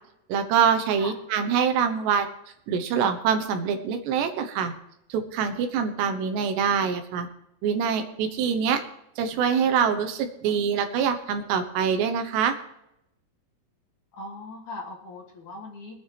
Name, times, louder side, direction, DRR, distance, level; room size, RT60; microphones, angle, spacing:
voice 1, 0.3-2.3 2.7-4.7 5.1-7.3 7.6-8.8 9.2-12.5, right 7 dB, 80° right, 7 dB, 3.4 m, -24 dB
voice 2, 14.1-16.0, left 2 dB, 50° left, -1 dB, 3.9 m, -39 dB
24.5 x 9.4 x 3.0 m, 0.82 s
omnidirectional pair, 4.9 m